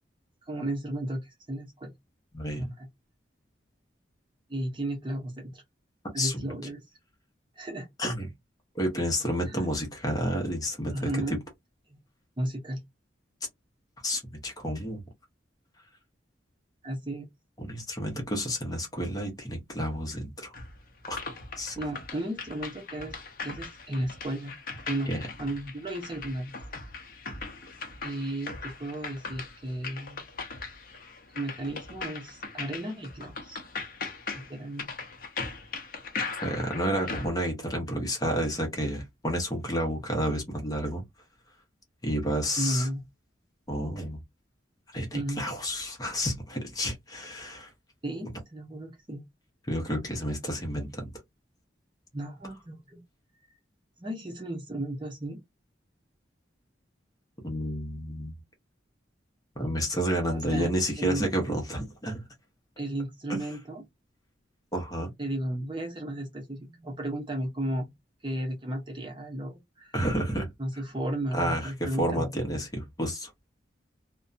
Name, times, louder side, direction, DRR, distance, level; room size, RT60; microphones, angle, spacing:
voice 1, 0.4-1.9 2.5-2.9 4.5-5.6 6.1-6.8 7.6-7.9 9.5-9.7 10.9-11.4 11.9-12.0 12.4-12.8 16.8-17.3 21.8-23.1 23.4-24.5 24.9-25.1 25.4-26.5 28.0-30.2 31.3-33.6 34.3-34.9 42.6-43.0 44.9-45.4 48.0-49.2 52.1-53.0 54.0-55.4 60.3-60.7 61.0-61.6 62.8-63.8 65.2-67.9 68.2-70.0 70.6-72.3, right 1 dB, 25° right, 0.7 m, -34 dB
voice 2, 2.3-2.7 6.2-6.4 8.0-8.3 8.8-11.4 14.0-15.0 17.6-20.5 21.1-21.2 21.6-21.7 25.1-25.3 36.4-41.0 42.0-42.9 43.7-44.2 44.9-47.7 49.7-51.1 57.4-58.4 59.6-62.2 63.3-63.4 64.7-65.1 69.9-70.5 71.3-73.3, equal, 20° left, 0.8 m, -30 dB
sound 1, 20.5-37.3, left 4 dB, 50° left, 0.6 m, -39 dB
2.6 x 2.2 x 2.5 m
head